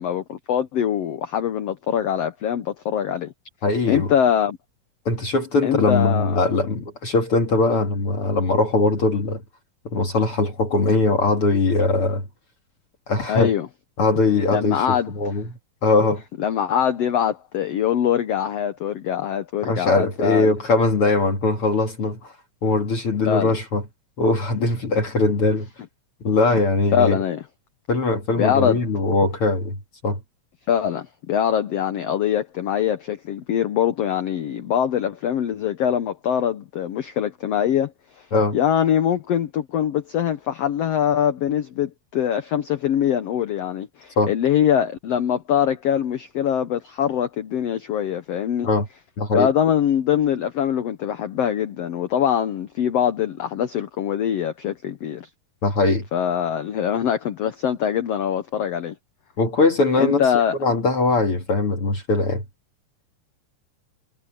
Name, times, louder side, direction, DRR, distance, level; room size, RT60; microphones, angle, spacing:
voice 1, 0.0-3.3 3.9-4.6 5.6-6.4 13.3-13.7 14.5-15.1 16.4-20.5 23.2-23.5 26.9-27.4 28.4-28.8 30.7-37.9 38.2-38.3 38.5-48.7 49.3-55.3 56.1-58.9 60.0-60.6, left 9 dB, 75° left, 1.5 m, -23 dB
voice 2, 3.6-4.1 5.1-9.4 9.8-12.3 13.1-13.5 14.0-16.2 19.6-22.3 22.6-23.8 24.2-25.7 26.2-27.2 27.9-30.2 38.3-38.6 44.2-44.3 48.6-48.9 49.2-49.5 55.6-56.1 59.4-60.3 60.6-62.4, left 3 dB, 45° left, 2.6 m, -21 dB
omnidirectional pair, 4.1 m